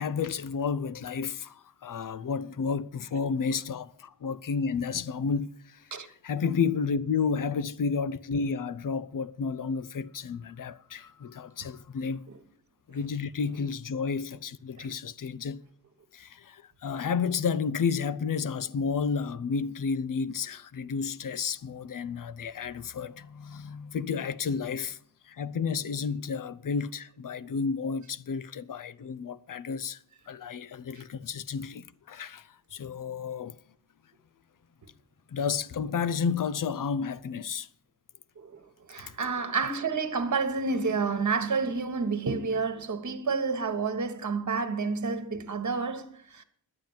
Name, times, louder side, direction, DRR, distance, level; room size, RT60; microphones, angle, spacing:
voice 1, 0.0-5.9 6.2-12.2 12.9-15.7 16.1-25.0 25.2-30.0 30.3-33.6 35.3-37.7, left 5 dB, 55° left, 0.7 m, -31 dB
voice 2, 38.9-46.4, right 4 dB, 50° right, 1.4 m, -29 dB
11.0 x 9.2 x 7.3 m
wide cardioid pair, 75°, 38 cm